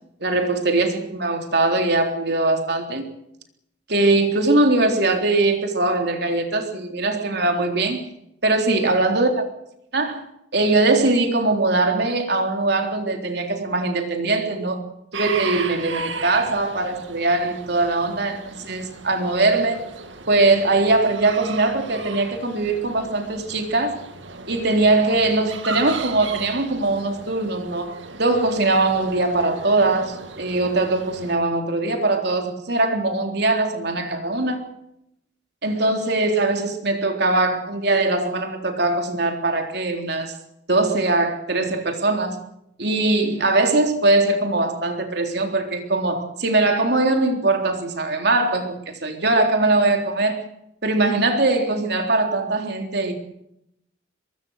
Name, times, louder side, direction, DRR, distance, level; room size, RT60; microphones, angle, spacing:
voice 1, 0.2-3.0 3.9-8.1 8.4-9.5 9.9-10.2 10.5-14.8 15.1-19.9 20.3-24.0 24.5-34.6 35.6-40.3 40.7-42.4 42.8-50.5 50.8-53.1, right 2 dB, 60° right, 3.7 m, -21 dB
sound 1, 15.1-31.3, right 4 dB, 80° right, 2.2 m, -36 dB
23.5 x 22.5 x 6.5 m
head